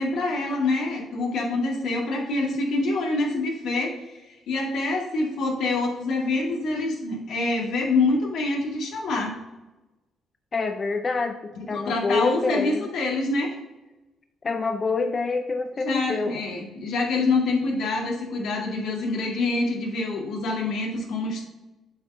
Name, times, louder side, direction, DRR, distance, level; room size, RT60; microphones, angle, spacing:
voice 1, 0.0-4.0 4.5-9.4 11.6-13.6 15.8-21.4, left 3 dB, 80° left, -1 dB, 2.0 m, -26 dB
voice 2, 10.5-12.9 14.4-16.4, left 3 dB, 35° left, 6 dB, 0.5 m, -26 dB
7.7 x 4.3 x 3.7 m, 1.1 s
cardioid pair, 90°, 0 cm